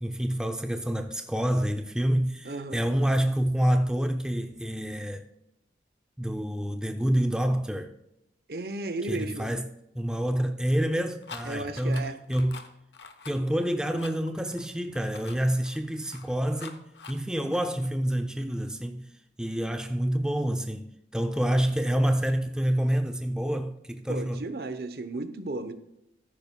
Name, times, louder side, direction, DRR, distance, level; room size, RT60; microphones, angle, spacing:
voice 1, 0.0-5.2 6.2-7.9 9.1-9.6 9.9-12.6 13.3-19.0 19.4-24.4, equal, 5° right, 0.5 m, -27 dB
voice 2, 2.4-2.9 8.5-9.5 11.4-12.2 24.1-25.8, right 2 dB, 60° right, 0.8 m, -34 dB
sound 1, 11.2-17.9, left 5 dB, 80° left, 1.0 m, -46 dB
14.0 x 9.9 x 2.3 m
head